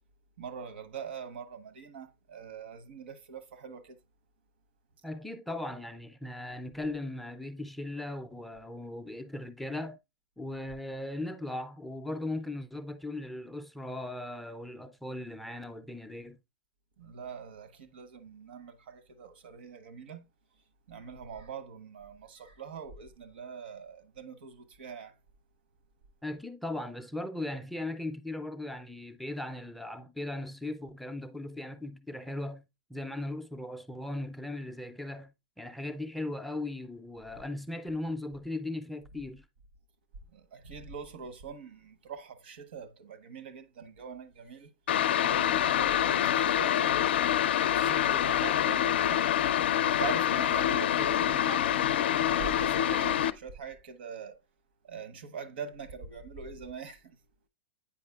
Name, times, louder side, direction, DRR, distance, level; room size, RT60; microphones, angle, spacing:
voice 1, 0.4-4.0 17.0-20.2 20.9-25.1 40.3-44.7 45.2-47.4 47.7-49.2 49.8-54.4 54.8-57.2, right 6 dB, 75° right, 0.9 m, -43 dB
voice 2, 5.0-10.0 10.4-16.4 26.2-32.6 32.9-39.5, left 2 dB, ahead, 0.3 m, -38 dB
sound 1, 44.9-53.3, left 10 dB, 80° left, 0.4 m, -26 dB
8.6 x 4.9 x 2.3 m
supercardioid pair, 150°, 6 cm